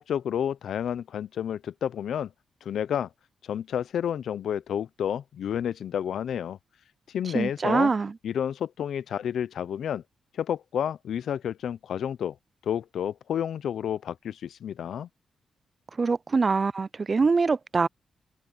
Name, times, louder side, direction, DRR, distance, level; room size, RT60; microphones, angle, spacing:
voice 1, 0.0-2.3 2.6-3.1 3.4-6.6 7.1-7.9 8.2-10.0 10.3-12.4 12.6-15.1, left 9 dB, 80° left, 0.6 m, -30 dB
voice 2, 7.3-8.1 16.0-17.9, right 4 dB, 40° right, 0.4 m, -24 dB
open air
cardioid pair, 75°, 0 cm